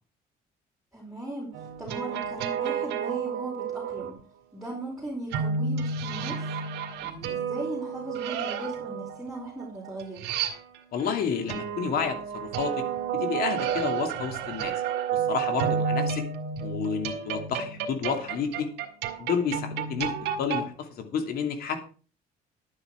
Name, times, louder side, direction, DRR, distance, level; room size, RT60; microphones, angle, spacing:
voice 1, 0.9-4.2 4.5-6.5 7.0-10.3, right 2 dB, 5° right, -5 dB, 4.6 m, -38 dB
sound 1, 1.5-4.1 5.3-11.0 11.5-20.7, right 7 dB, 85° right, 1.7 m, -31 dB
voice 2, 10.9-12.7 13.1-14.7 15.1-16.2 16.6-18.7 19.2-20.1 20.4-21.8, left 6 dB, 65° left, 6 dB, 2.8 m, -30 dB
11.5 x 9.0 x 4.7 m, 0.38 s
cardioid pair, 110°, 17 cm